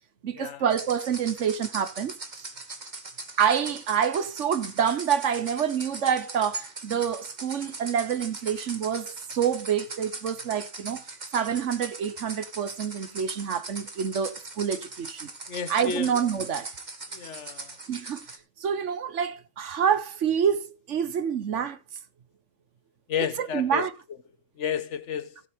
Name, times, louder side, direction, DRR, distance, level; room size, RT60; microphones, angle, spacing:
voice 1, 0.2-2.5 3.4-15.3 15.7-16.7 17.9-18.2 18.6-21.8 23.4-23.9, right 8 dB, 65° right, 1.2 m, -27 dB
sound 1, 0.7-18.4, right 3 dB, 35° right, 1.7 m, -40 dB
voice 2, 15.5-16.1 17.1-17.8 23.1-23.8 24.6-25.4, left 7 dB, 65° left, 1.2 m, -31 dB
16.5 x 7.2 x 3.5 m
omnidirectional pair, 1.4 m